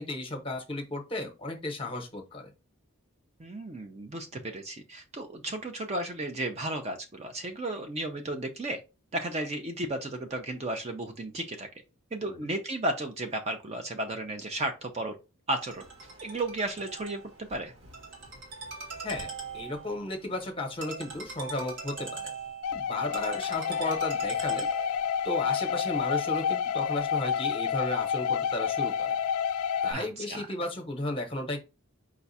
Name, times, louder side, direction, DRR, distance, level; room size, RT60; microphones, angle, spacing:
voice 1, 0.0-2.5 12.2-12.5 19.0-22.3 22.7-24.7 25.2-29.2 29.8-31.6, left 2 dB, 25° left, 4 dB, 0.9 m, -34 dB
voice 2, 3.4-8.8 9.1-11.7 12.1-15.1 15.5-15.8 16.2-17.7 29.9-30.5, right 1 dB, 30° right, 5 dB, 0.5 m, -34 dB
Ringtone, 15.6-25.2, right 4 dB, 55° right, 1.5 m, -42 dB
sound 1, 22.6-29.9, left 8 dB, 80° left, 0.3 m, -29 dB
4.8 x 2.3 x 4.0 m, 0.28 s
head